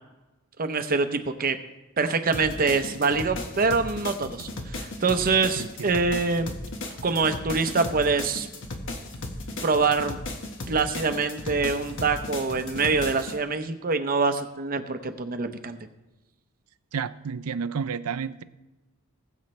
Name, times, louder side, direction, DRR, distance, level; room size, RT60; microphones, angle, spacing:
voice 1, 0.6-1.6 2.0-6.6 7.0-8.5 9.6-10.2 10.7-15.8, right 4 dB, 40° right, 8 dB, 0.7 m, -25 dB
sound 1, 2.3-13.4, left 2 dB, 55° left, 1.2 m, -36 dB
voice 2, 5.6-5.9 16.9-18.4, right 6 dB, 80° right, 14 dB, 0.5 m, -31 dB
19.5 x 7.1 x 3.2 m, 1.1 s
head